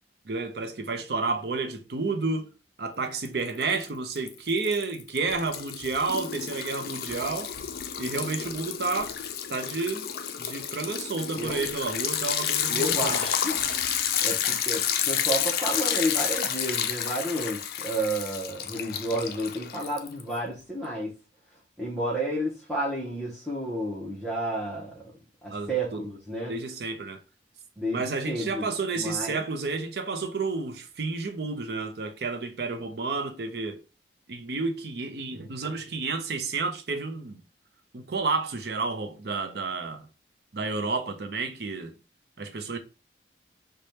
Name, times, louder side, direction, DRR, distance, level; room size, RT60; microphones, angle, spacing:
voice 1, 0.3-2.5 2.8-7.5 8.0-9.2 9.5-10.1 10.4-13.3 25.5-26.1 26.5-27.2 27.9-33.8 34.3-37.4 37.9-40.1 40.5-42.0 42.4-42.8, right 3 dB, 60° right, 0.6 m, -31 dB
Liquid, 3.2-3.8 4.2-20.3, left 9 dB, 55° left, 0.4 m, -30 dB
voice 2, 12.7-13.7 14.2-21.1 21.8-25.0 25.4-26.5 27.8-29.4, right 1 dB, ahead, 0.7 m, -31 dB
3.3 x 2.2 x 4.0 m
head